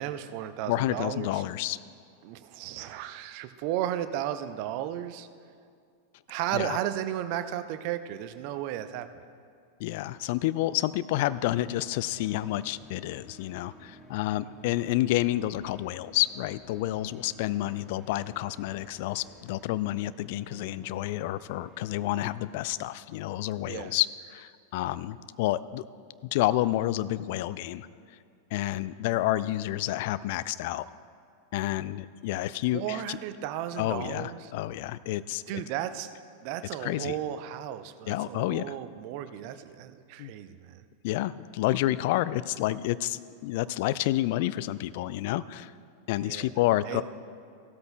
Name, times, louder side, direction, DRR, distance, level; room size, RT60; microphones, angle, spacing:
voice 1, 0.0-1.4 2.2-5.3 6.3-9.1 23.7-24.0 32.7-34.5 35.5-36.1 36.4-40.8 46.2-46.5 46.9-47.0, right 11 dB, 45° right, 11 dB, 0.5 m, -34 dB
voice 2, 0.7-1.8 6.5-6.8 9.8-25.8 26.3-27.9 28.5-30.9 31.5-33.2 33.8-35.4 36.8-37.2 38.1-38.7 40.2-40.3 41.0-45.7 46.1-47.0, left 15 dB, 50° left, 16 dB, 0.3 m, -29 dB
sound 1, 11.2-22.7, left 1 dB, 10° left, 1.0 m, -54 dB
16.0 x 13.0 x 2.3 m, 2.3 s
figure-of-eight pair, 90°, 0 cm